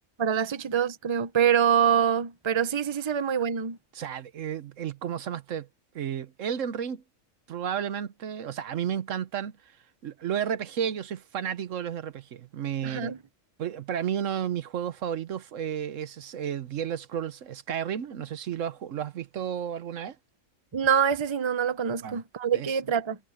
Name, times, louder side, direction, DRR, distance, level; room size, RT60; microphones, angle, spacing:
voice 1, 0.2-3.8 12.8-13.2 20.7-23.2, right 8 dB, 25° right, 0.7 m, -25 dB
voice 2, 3.9-5.7 5.9-7.0 7.5-9.5 10.0-13.1 13.6-20.2 22.0-22.2 22.5-22.8, right 9 dB, 70° right, 1.2 m, -32 dB
omnidirectional pair, 1.4 m